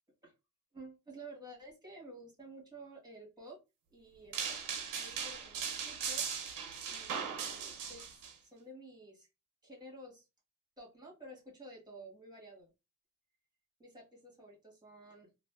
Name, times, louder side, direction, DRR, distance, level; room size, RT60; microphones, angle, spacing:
voice 1, 0.7-3.6 3.9-4.6 4.9-8.1 8.4-9.3 9.6-10.3 10.8-12.7 13.8-15.3, right 1 dB, 15° right, -1 dB, 1.6 m, -52 dB
sound 1, 4.3-8.3, right 7 dB, 85° right, 0.9 m, -38 dB
3.1 x 2.5 x 2.4 m, 0.25 s
cardioid pair, 115°, 31 cm